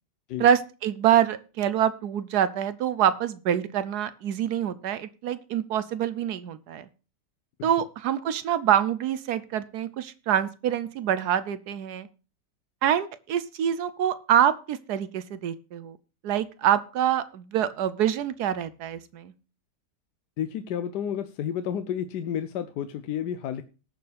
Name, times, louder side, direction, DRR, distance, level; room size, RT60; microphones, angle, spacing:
voice 1, 0.4-6.8 7.6-12.1 12.8-16.0 16.2-19.3, right 10 dB, 75° right, 15 dB, 1.2 m, -25 dB
voice 2, 20.4-23.6, left 9 dB, 75° left, 10 dB, 1.2 m, -31 dB
19.0 x 6.9 x 3.4 m, 0.34 s
omnidirectional pair, 1.8 m